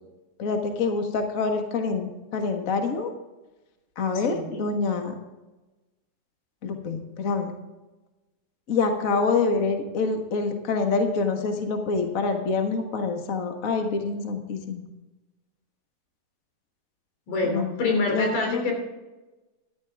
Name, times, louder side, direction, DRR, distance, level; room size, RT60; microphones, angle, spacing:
voice 1, 0.4-3.1 4.0-5.1 6.6-7.5 8.7-14.9 17.4-17.7 18.1-18.6, left 4 dB, 60° left, 5 dB, 0.8 m, -26 dB
voice 2, 4.1-4.6 17.3-18.8, left 3 dB, 80° left, 2 dB, 4.6 m, -26 dB
13.5 x 11.5 x 3.5 m, 1.1 s
omnidirectional pair, 3.8 m